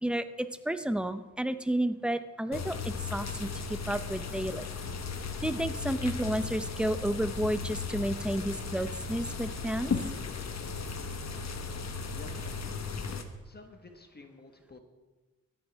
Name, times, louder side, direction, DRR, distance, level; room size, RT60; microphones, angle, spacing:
voice 1, 0.0-4.7 5.4-9.9, right 1 dB, 5° right, 11 dB, 0.6 m, -31 dB
sound 1, 2.5-13.2, left 5 dB, 60° left, 1.2 m, -36 dB
voice 2, 12.1-12.8 13.4-14.8, left 3 dB, 35° left, 5 dB, 1.4 m, -51 dB
24.0 x 8.8 x 3.5 m, 1.2 s
wide cardioid pair, 115°, 30 cm